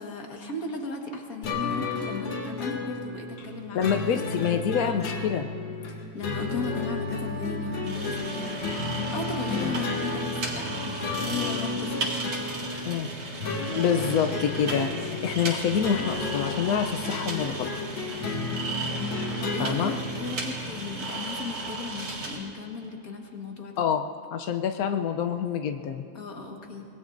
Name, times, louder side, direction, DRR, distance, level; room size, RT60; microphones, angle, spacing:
voice 1, 0.0-4.2 5.0-5.4 6.1-8.6 9.1-12.1 19.4-23.8 26.1-26.9, left 4 dB, 45° left, 2 dB, 1.9 m, -36 dB
sound 1, 1.4-20.6, left 3 dB, 90° left, 2.4 m, -33 dB
voice 2, 3.7-5.5 9.6-9.7 12.9-13.1 13.7-17.7 19.6-19.9 23.8-24.0 24.3-26.0, left 8 dB, 75° left, 5 dB, 0.8 m, -27 dB
Wind instrument woodwind instrument, 6.7-11.6, left 1 dB, 50° right, 1.9 m, -40 dB
sound 2, 7.8-22.4, right 2 dB, 80° right, 3.1 m, -35 dB
25.5 x 20.0 x 2.6 m, 2.8 s
omnidirectional pair, 2.3 m